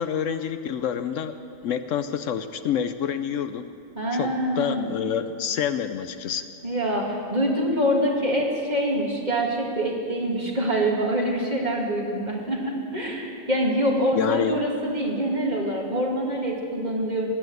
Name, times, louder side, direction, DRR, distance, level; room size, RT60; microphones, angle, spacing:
voice 1, 0.0-1.3 1.6-3.6 4.1-6.4 14.2-14.6, left 8 dB, 75° left, 10 dB, 0.9 m, -27 dB
voice 2, 4.0-4.9 6.6-17.3, right 1 dB, 30° right, -1 dB, 2.4 m, -25 dB
18.5 x 9.2 x 7.9 m, 2.5 s
omnidirectional pair, 1.4 m